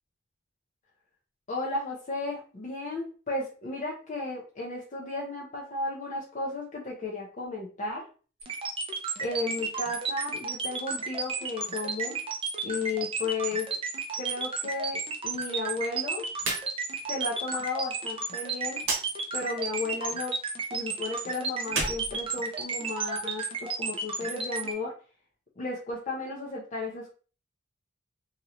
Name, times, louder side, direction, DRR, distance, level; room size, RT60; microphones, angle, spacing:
voice 1, 1.5-8.1 9.2-12.2 12.6-13.7 14.2-16.3 17.1-18.8 19.3-20.3 20.7-24.9 25.6-27.1, left 3 dB, 40° left, -4 dB, 0.6 m, -34 dB
sound 1, 8.4-24.7, right 4 dB, 30° right, 0.5 m, -32 dB
sound 2, 16.4-16.7 17.0-17.1 18.8-19.1 21.6-22.9, right 3 dB, 80° right, 0.9 m, -32 dB
3.0 x 2.8 x 2.5 m, 0.38 s
head